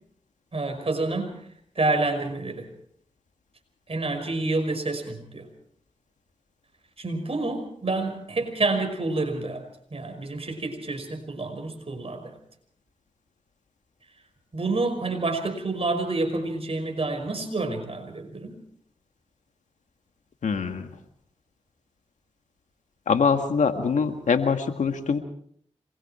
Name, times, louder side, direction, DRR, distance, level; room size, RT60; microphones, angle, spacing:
voice 1, 0.5-1.3 1.8-2.7 3.9-5.5 7.0-9.6 9.9-12.3 14.5-18.6, right 2 dB, 50° right, 5 dB, 5.6 m, -28 dB
voice 2, 20.4-20.9 23.1-25.2, left 5 dB, 80° left, 7 dB, 2.0 m, -23 dB
26.5 x 22.0 x 4.5 m, 0.63 s
cardioid pair, 40°, 12 cm